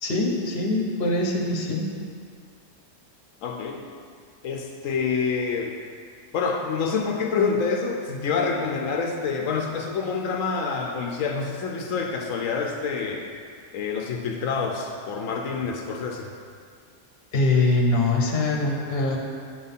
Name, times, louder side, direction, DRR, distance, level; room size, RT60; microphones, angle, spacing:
voice 1, 0.0-1.9 17.3-19.2, left 2 dB, 55° left, 0 dB, 1.2 m, -23 dB
voice 2, 3.4-3.8 4.4-5.7 6.3-13.3 13.7-16.3, left 5 dB, 85° left, 1 dB, 1.1 m, -27 dB
8.2 x 4.0 x 5.5 m, 2.1 s
omnidirectional pair, 1.3 m